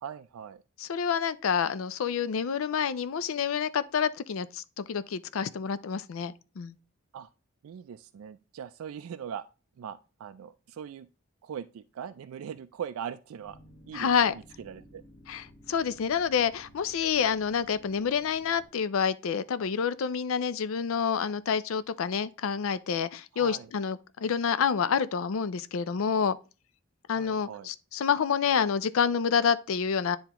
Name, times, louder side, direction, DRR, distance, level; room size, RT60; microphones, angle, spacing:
voice 1, 0.0-0.6 7.1-7.3 7.6-9.4 9.8-11.1 11.4-13.6 13.9-15.0 23.3-23.7 27.1-27.7, right 8 dB, 80° right, 0.3 m, -41 dB
voice 2, 0.8-6.7 13.9-14.3 15.3-26.4 27.1-30.2, left 7 dB, 70° left, 0.4 m, -28 dB
sound 1, 13.4-18.7, equal, 35° left, 1.6 m, -55 dB
9.9 x 3.5 x 2.9 m
head